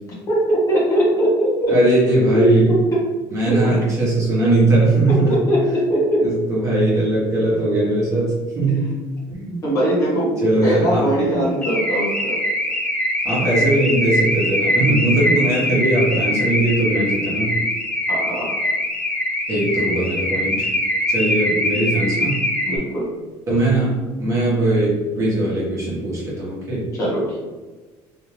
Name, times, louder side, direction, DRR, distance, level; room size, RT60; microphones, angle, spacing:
voice 1, 0.3-1.8 2.3-3.0 3.4-3.8 5.1-6.3 8.7-8.8 9.6-12.4 18.1-18.5 22.7-23.1 26.9-27.4, right 1 dB, 35° left, -6 dB, 1.3 m, -20 dB
voice 2, 1.7-2.7 3.3-5.4 6.2-8.9 9.3-9.6 10.4-11.5 13.2-17.6 19.5-20.7 21.1-22.4 23.5-26.9, right 2 dB, 35° right, -7 dB, 1.3 m, -20 dB
Car / Alarm, 11.6-22.8, left 1 dB, 15° left, 0.4 m, -22 dB
3.4 x 2.7 x 3.2 m, 1.3 s
cardioid pair, 160°, 9 cm